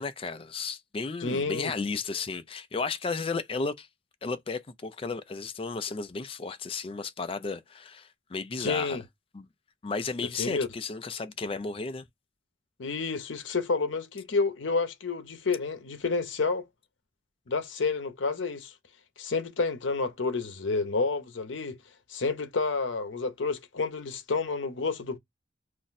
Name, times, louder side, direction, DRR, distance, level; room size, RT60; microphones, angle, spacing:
voice 1, 0.0-3.9 4.2-9.0 9.3-9.5 9.8-12.0, left 4 dB, 30° left, 0.4 m, -33 dB
voice 2, 1.2-1.7 8.6-9.0 10.4-10.7 12.8-16.7 17.5-18.7 19.2-21.8 22.1-25.2, left 4 dB, 85° left, 0.7 m, -29 dB
2.6 x 2.0 x 4.0 m
head